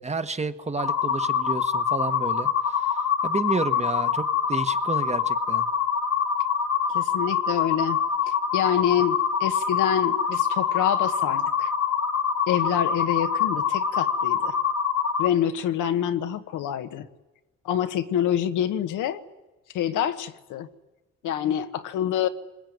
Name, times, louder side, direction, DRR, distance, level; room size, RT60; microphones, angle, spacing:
voice 1, 0.0-5.7, right 3 dB, 20° right, 10 dB, 1.3 m, -31 dB
sound 1, 0.8-15.3, left 7 dB, 60° left, 1.3 m, -25 dB
voice 2, 6.9-11.7 12.5-14.5 15.2-17.1 17.6-19.2 19.7-20.7 21.2-22.3, left 10 dB, 85° left, 8 dB, 1.4 m, -26 dB
25.0 x 21.0 x 9.4 m, 1.1 s
cardioid pair, 90°, 30 cm